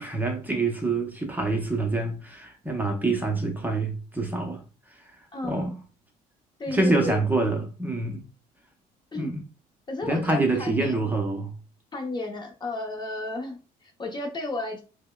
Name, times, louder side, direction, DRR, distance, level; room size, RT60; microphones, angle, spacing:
voice 1, 0.0-4.6 5.4-5.7 6.7-8.2 9.1-9.4 10.0-11.5, right 2 dB, 10° right, 0.7 m, -26 dB
voice 2, 5.3-5.7 6.6-7.2 9.1-9.3 9.9-11.1 11.9-14.8, left 2 dB, 25° left, 0.7 m, -33 dB
5.2 x 2.1 x 2.2 m
cardioid pair, 110°, 17 cm